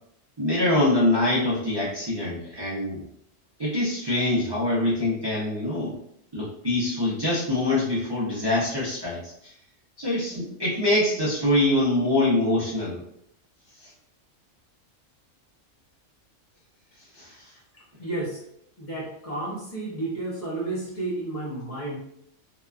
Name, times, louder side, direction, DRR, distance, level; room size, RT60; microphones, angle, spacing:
voice 1, 0.4-3.0 3.6-6.0 6.3-9.2 10.0-13.0 17.1-17.3, left 1 dB, 45° right, -7 dB, 0.3 m, -24 dB
voice 2, 18.0-18.4 18.8-22.0, right 2 dB, 35° left, -6 dB, 0.7 m, -32 dB
2.8 x 2.2 x 2.3 m, 0.72 s
omnidirectional pair, 1.3 m